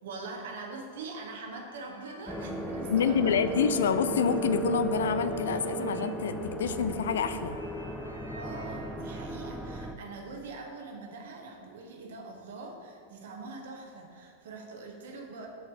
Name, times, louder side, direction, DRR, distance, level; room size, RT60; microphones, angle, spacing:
voice 1, 0.0-3.6 8.3-15.5, right 3 dB, 60° right, 2 dB, 1.2 m, -43 dB
sound 1, 1.5-9.4, equal, 90° right, 0.8 m, -48 dB
sound 2, 2.3-9.9, right 3 dB, ahead, 0.6 m, -35 dB
voice 2, 2.9-7.6, left 7 dB, 60° left, 12 dB, 0.3 m, -27 dB
6.5 x 4.5 x 6.7 m, 2.3 s
figure-of-eight pair, 90°, 0 cm